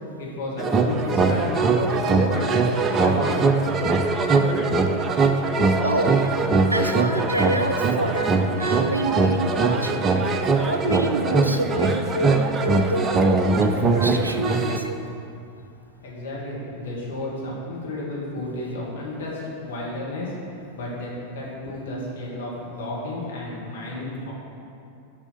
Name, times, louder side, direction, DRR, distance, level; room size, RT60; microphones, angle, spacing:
voice 1, 0.2-2.5 2.9-3.5 16.0-20.3 20.7-24.3, left 2 dB, 60° left, -5 dB, 1.9 m, -32 dB
sound 1, 0.6-14.8, right 3 dB, 20° right, 0.5 m, -21 dB
voice 2, 5.8-6.2 6.7-8.3 8.6-10.0 10.7-15.0, right 1 dB, 85° right, 7 dB, 0.5 m, -28 dB
6.9 x 5.5 x 5.8 m, 2.6 s
figure-of-eight pair, 90°, 0 cm